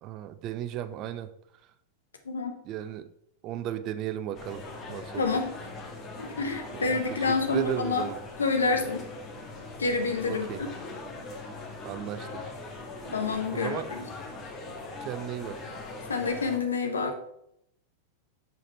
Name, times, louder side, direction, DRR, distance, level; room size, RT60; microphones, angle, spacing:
voice 1, 0.0-1.3 2.6-3.1 3.4-5.4 6.7-7.0 7.3-8.2 10.3-10.6 11.8-12.4 13.1-13.2 13.5-13.9 15.0-15.7, right 11 dB, 35° right, 12 dB, 0.5 m, -35 dB
sound 1, 4.3-16.6, left 3 dB, 30° left, 1.5 m, -41 dB
voice 2, 5.2-5.5 6.2-8.1 8.4-9.1 9.8-10.5 13.1-14.0 16.1-17.2, left 4 dB, 70° left, 5 dB, 1.0 m, -28 dB
6.7 x 4.9 x 4.2 m, 0.73 s
figure-of-eight pair, 90°, 0 cm